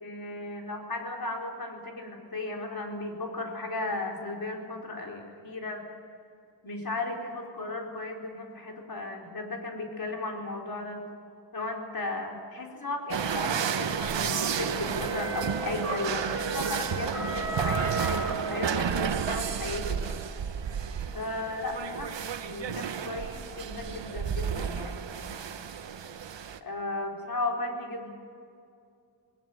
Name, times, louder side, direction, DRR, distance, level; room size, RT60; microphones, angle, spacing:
voice 1, 0.0-5.8 6.6-11.0 11.5-20.0 21.1-22.1 22.5-25.3 26.6-28.1, left 2 dB, 55° left, 1 dB, 4.4 m, -35 dB
sound 1, 13.1-26.6, right 7 dB, 80° right, 1.1 m, -32 dB
sound 2, 14.3-19.1, right 2 dB, 35° right, 5.1 m, -35 dB
20.5 x 19.0 x 9.3 m, 2.4 s
wide cardioid pair, 80°, 44 cm